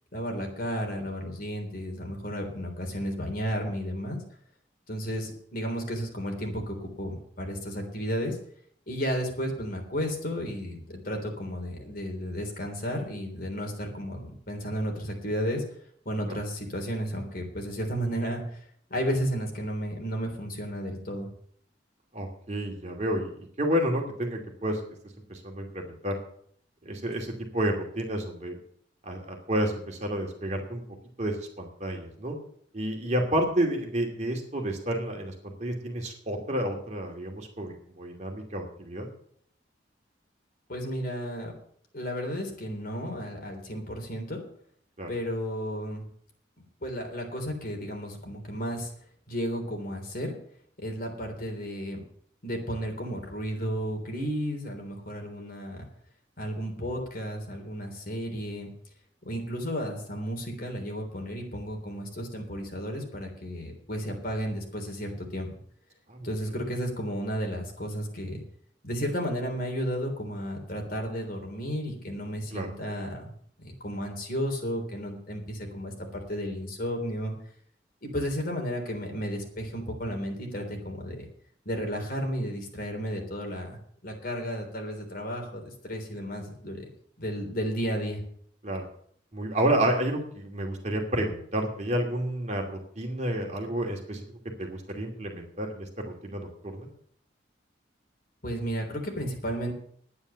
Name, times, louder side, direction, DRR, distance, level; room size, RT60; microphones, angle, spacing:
voice 1, 0.1-4.2 4.9-8.4 8.9-15.6 16.1-18.6 18.9-21.3 40.7-41.5 41.9-44.4 45.1-46.0 46.8-48.9 49.3-50.3 50.8-52.0 52.4-55.9 56.4-58.7 59.2-65.5 66.2-68.4 68.8-73.3 73.6-77.3 78.0-81.3 81.7-83.8 84.0-86.8 87.2-88.2 98.4-99.7, equal, 50° left, 2 dB, 3.5 m, -33 dB
voice 2, 22.1-24.8 25.3-26.2 26.8-28.6 29.1-30.8 31.2-32.3 32.7-39.1 45.0-45.1 66.1-66.3 72.5-72.7 88.6-88.8 89.3-94.2 94.6-96.9, right 1 dB, 40° right, 1 dB, 2.5 m, -30 dB
11.0 x 9.6 x 6.9 m, 0.62 s
head